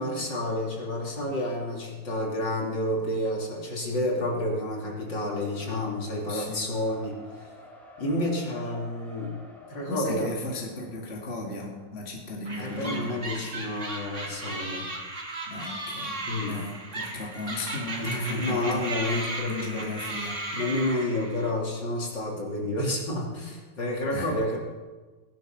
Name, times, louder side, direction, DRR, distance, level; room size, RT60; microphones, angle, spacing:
voice 1, 0.0-7.5 8.0-9.3 9.7-10.4 12.6-14.9 16.3-16.6 18.0-19.9 20.5-24.6, left 1 dB, 55° left, -2 dB, 3.7 m, -30 dB
Race car auto racing, 3.7-14.2, left 1 dB, ahead, 2.7 m, -51 dB
voice 2, 6.3-6.7 9.9-13.1 15.5-16.2 16.5-20.5 24.1-24.3, left 2 dB, 30° left, -1 dB, 2.4 m, -36 dB
sound 1, 12.4-21.5, right 2 dB, 35° right, 2.7 m, -36 dB
19.0 x 11.5 x 6.0 m, 1.3 s
omnidirectional pair, 2.3 m